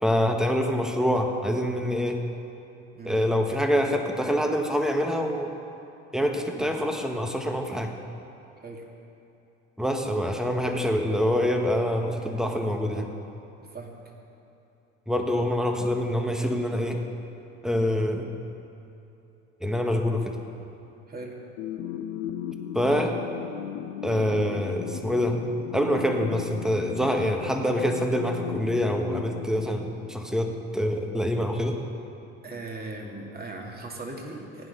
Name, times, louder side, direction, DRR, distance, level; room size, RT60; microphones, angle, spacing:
voice 1, 0.0-2.2 3.0-5.5 6.1-7.9 9.8-13.1 15.1-17.0 17.6-18.3 19.6-20.4 22.7-23.2 24.0-25.4 25.7-31.8, equal, ahead, 3 dB, 1.5 m, -25 dB
voice 2, 13.6-14.1 21.1-21.4 32.4-34.7, right 2 dB, 25° right, 0 dB, 2.6 m, -39 dB
sound 1, 21.6-30.6, left 10 dB, 65° left, 1.0 m, -37 dB
16.5 x 9.3 x 5.6 m, 2.9 s
hypercardioid pair, 70°, 38 cm